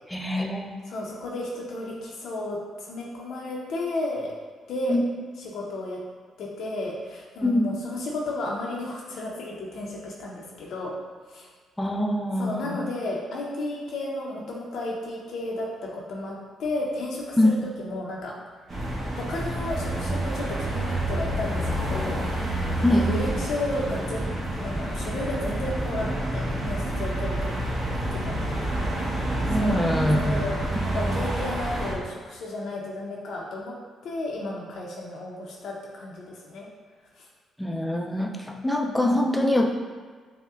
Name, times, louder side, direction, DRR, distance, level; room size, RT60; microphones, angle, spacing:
voice 1, 0.1-0.8 4.9-5.0 7.4-7.7 11.8-12.7 17.4-17.6 22.8-23.1 29.5-30.4 30.9-31.2 37.6-39.7, left 1 dB, 5° left, 2 dB, 0.4 m, -24 dB
voice 2, 0.9-4.4 4.7-5.0 5.4-6.0 6.4-10.9 11.3-11.5 12.4-18.3 19.1-22.2 22.5-22.6 22.9-24.3 24.6-27.5 28.1-28.4 29.5-33.8 34.0-36.7 37.2-37.3 38.8-39.3, left 2 dB, 70° left, -3 dB, 0.6 m, -33 dB
sound 1, 18.7-31.9, right 1 dB, 40° right, 1.0 m, -28 dB
5.5 x 2.1 x 2.4 m, 1.6 s
cardioid pair, 90°, 0 cm